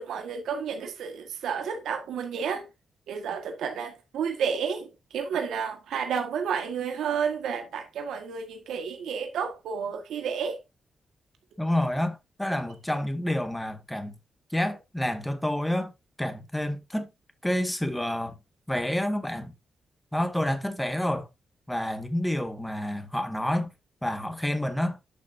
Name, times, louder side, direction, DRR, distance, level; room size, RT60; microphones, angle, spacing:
voice 1, 0.0-2.7 3.1-10.6, right 6 dB, 85° right, 1.6 m, -31 dB
voice 2, 11.6-14.1 14.5-15.9 16.2-17.1 17.4-18.4 18.7-19.5 20.1-21.3 21.7-23.7 24.0-25.0, left 1 dB, 10° left, 1.8 m, -28 dB
10.5 x 6.0 x 2.7 m
supercardioid pair, 55°, 0 cm